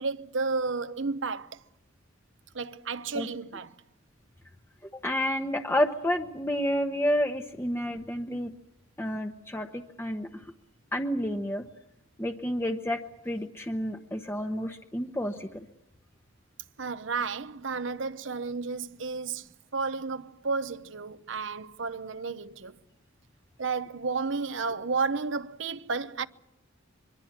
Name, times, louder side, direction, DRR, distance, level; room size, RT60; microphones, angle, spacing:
voice 1, 0.0-1.6 2.5-3.8 16.8-22.8 23.6-26.3, right 4 dB, 70° right, 0.9 m, -32 dB
voice 2, 4.9-8.5 9.0-10.3 10.9-11.6 12.2-13.0 13.2-15.6, equal, 10° left, 1.0 m, -30 dB
24.5 x 23.5 x 7.3 m
head